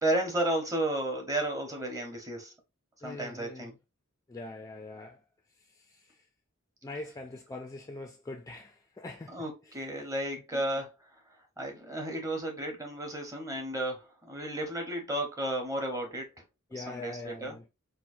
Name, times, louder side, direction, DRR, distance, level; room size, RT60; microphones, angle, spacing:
voice 1, 0.0-2.5 3.0-3.7 9.3-10.9 11.6-16.3 16.7-17.6, right 1 dB, 15° right, 0.9 m, -33 dB
voice 2, 3.0-3.8 4.3-5.2 5.7-6.2 6.8-9.8 10.5-10.7 16.7-17.6, left 2 dB, 15° left, 0.3 m, -43 dB
4.4 x 2.1 x 2.5 m
head